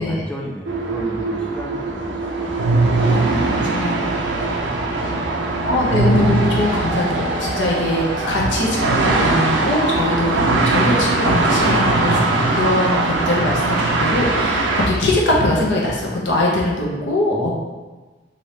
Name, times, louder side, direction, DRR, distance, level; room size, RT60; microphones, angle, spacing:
voice 1, 0.0-5.7 17.3-17.5, equal, 5° left, -2 dB, 0.4 m, -34 dB
sound 1, 0.7-14.9, right 2 dB, 80° right, 0.4 m, -20 dB
voice 2, 3.1-3.9 5.6-17.5, left 1 dB, 85° left, -3 dB, 0.6 m, -21 dB
2.7 x 2.6 x 3.2 m, 1.2 s
head